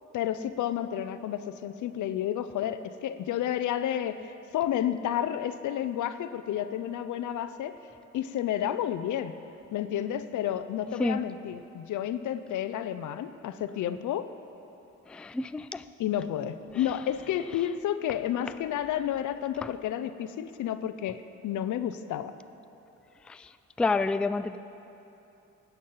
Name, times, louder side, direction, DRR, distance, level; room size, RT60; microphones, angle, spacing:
voice 1, 0.1-7.8 8.1-9.3 9.7-14.3 16.0-22.3, left 10 dB, 75° left, 12 dB, 0.7 m, -31 dB
voice 2, 15.1-15.8 23.3-23.5 23.8-24.6, left 3 dB, 5° left, 12 dB, 0.3 m, -28 dB
16.5 x 9.6 x 5.6 m, 2.9 s
cardioid pair, 90°, 30 cm